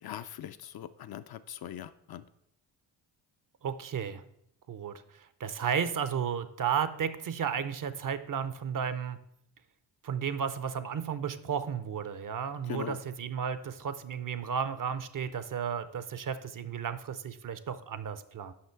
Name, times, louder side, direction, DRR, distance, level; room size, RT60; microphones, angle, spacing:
voice 1, 0.0-2.2 12.7-13.0, left 10 dB, 50° left, 11 dB, 0.5 m, -41 dB
voice 2, 3.6-4.2 4.7-9.2 10.0-18.5, right 7 dB, 40° right, 13 dB, 0.6 m, -33 dB
5.8 x 5.4 x 4.5 m, 0.74 s
supercardioid pair, 50°, 49 cm